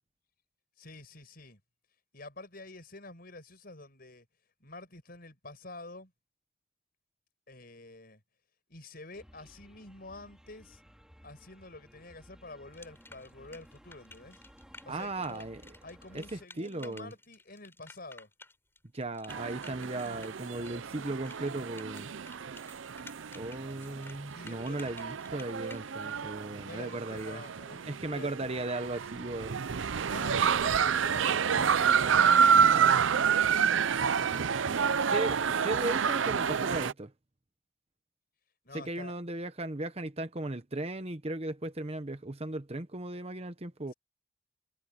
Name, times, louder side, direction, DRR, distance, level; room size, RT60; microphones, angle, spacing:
voice 1, 0.8-1.6 2.1-4.3 4.6-6.1 7.5-8.2 8.7-10.8 11.2-14.4 14.8-15.5 15.8-18.3 24.3-24.8 26.6-28.4 30.1-33.2 38.6-39.1, left 2 dB, 50° left, 5.9 m, -48 dB
sound 1, 9.1-16.5, equal, 5° right, 3.7 m, -57 dB
sound 2, 12.7-25.9, left 2 dB, 10° left, 7.6 m, -53 dB
voice 2, 14.9-15.7 16.1-17.1 18.9-22.1 23.3-27.4 27.7-29.6 34.2-34.3 35.0-37.1 38.7-43.9, right 2 dB, 30° right, 1.1 m, -37 dB
sound 3, 19.3-36.9, right 7 dB, 75° right, 0.5 m, -28 dB
head